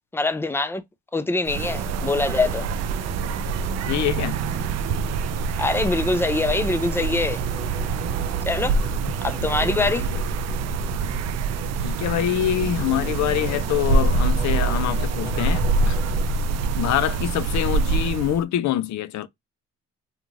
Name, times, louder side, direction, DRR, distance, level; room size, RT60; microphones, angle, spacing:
voice 1, 0.1-0.8 1.1-2.7 5.6-7.4 8.5-8.8 9.2-10.1, left 3 dB, 10° left, 0.4 m, -23 dB
sound 1, 1.5-16.3, right 3 dB, 20° right, 0.9 m, -38 dB
sound 2, 1.5-18.4, right 4 dB, 60° right, 0.4 m, -25 dB
voice 2, 3.9-4.4 9.0-9.1 9.4-10.2 11.8-16.0 16.8-19.3, left 12 dB, 70° left, 0.5 m, -25 dB
2.5 x 2.3 x 3.1 m
cardioid pair, 90°, 30 cm